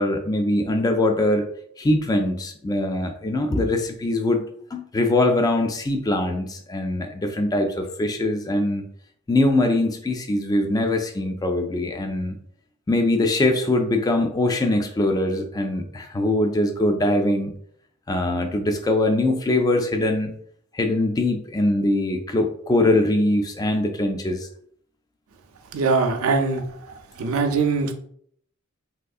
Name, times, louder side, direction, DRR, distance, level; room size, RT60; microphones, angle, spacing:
voice 1, 0.0-1.5 1.8-4.4 4.7-8.8 9.3-12.4 12.9-17.5 18.1-20.3 20.7-24.5, left 1 dB, 20° left, 5 dB, 0.3 m, -22 dB
voice 2, 25.7-27.9, right 4 dB, 85° right, 4 dB, 0.5 m, -23 dB
3.6 x 2.6 x 2.3 m, 0.63 s
head